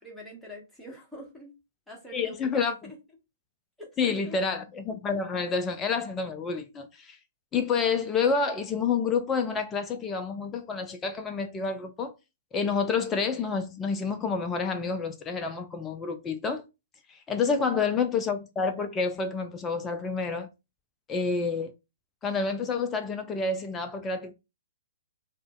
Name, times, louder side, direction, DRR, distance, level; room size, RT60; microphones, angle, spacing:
voice 1, 0.0-1.5 1.9-3.0 3.8-4.4 17.5-17.8, equal, ahead, 1.1 m, -45 dB
voice 2, 2.1-2.9 4.0-7.2 7.5-12.1 12.5-16.6 17.1-20.5 21.1-21.7 22.2-24.3, left 5 dB, 20° left, 0.4 m, -28 dB
2.4 x 2.1 x 3.5 m
figure-of-eight pair, 125°, 0 cm